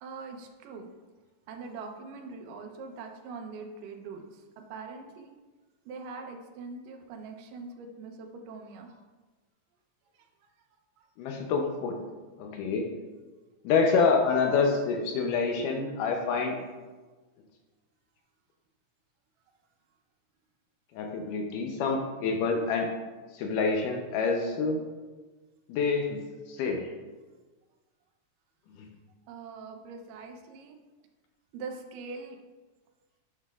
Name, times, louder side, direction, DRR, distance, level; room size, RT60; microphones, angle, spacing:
voice 1, 0.0-0.9 1.5-4.4 4.7-5.3 5.9-9.0 29.3-30.7 31.5-32.4, right 4 dB, 85° right, 3 dB, 2.3 m, -42 dB
voice 2, 11.2-12.0 12.4-12.9 13.6-16.6 20.9-22.9 23.3-24.8 25.7-26.2 26.5-26.8, left 4 dB, 80° left, 2 dB, 2.2 m, -27 dB
11.0 x 5.5 x 2.3 m, 1.3 s
omnidirectional pair, 3.8 m